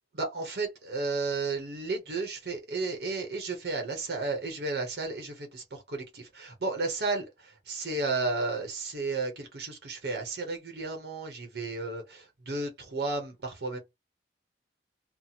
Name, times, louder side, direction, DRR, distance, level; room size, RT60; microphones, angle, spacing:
voice 1, 0.1-13.8, right 3 dB, 65° right, 0.8 m, -33 dB
2.8 x 2.0 x 4.0 m
head